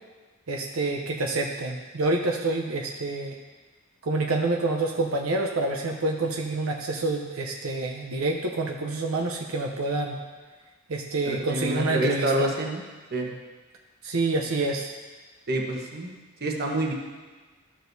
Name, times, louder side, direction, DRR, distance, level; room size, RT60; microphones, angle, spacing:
voice 1, 0.5-3.3 4.0-10.2 10.9-12.5 14.0-14.9, right 2 dB, 85° right, 1 dB, 0.7 m, -27 dB
voice 2, 11.2-12.8 13.1-13.3 15.5-16.9, right 1 dB, 50° right, 1 dB, 1.1 m, -28 dB
13.5 x 6.3 x 2.7 m, 1.3 s
head